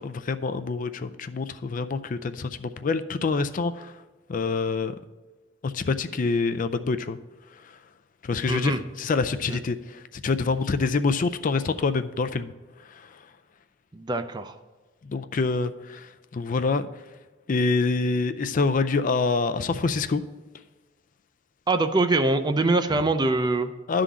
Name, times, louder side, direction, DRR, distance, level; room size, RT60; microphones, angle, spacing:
voice 1, 0.0-3.9 4.3-4.9 5.6-7.2 8.2-12.5 15.1-16.9 17.5-20.2 23.9-24.0, left 4 dB, 45° left, 10 dB, 0.4 m, -26 dB
voice 2, 8.5-8.8 9.5-9.6 13.9-14.5 21.7-23.7, right 2 dB, 25° right, 9 dB, 0.5 m, -23 dB
11.0 x 3.8 x 7.1 m, 1.3 s
head